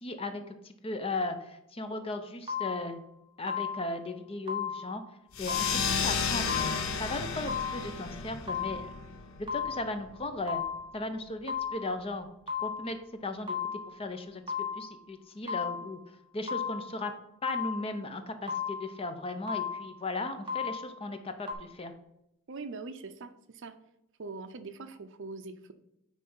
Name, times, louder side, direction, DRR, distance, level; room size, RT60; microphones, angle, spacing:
voice 1, 0.0-3.0 3.4-5.0 5.4-8.9 9.5-10.6 10.9-12.3 12.6-13.6 13.9-14.4 14.8-16.0 16.3-17.1 17.4-21.9, left 2 dB, 25° left, 8 dB, 0.6 m, -36 dB
sound 1, 2.5-3.0 3.5-4.0 4.5-5.0 5.5-6.0 6.5-7.0 7.5-8.0 8.5-9.0 9.5-10.0 10.5-11.0 11.5-12.0 12.5-13.0 13.5-14.0 14.5-15.0 15.5-16.0 16.5-17.0 17.5-18.0 18.5-19.0 19.5-20.0 20.5-21.0 21.5-21.6, left 7 dB, 20° right, 1.1 m, -35 dB
sound 2, 5.3-10.4, left 5 dB, 65° left, 0.7 m, -33 dB
voice 2, 22.5-23.7 24.2-25.7, right 3 dB, 60° right, 9 dB, 0.6 m, -42 dB
9.2 x 3.3 x 5.5 m, 0.81 s
head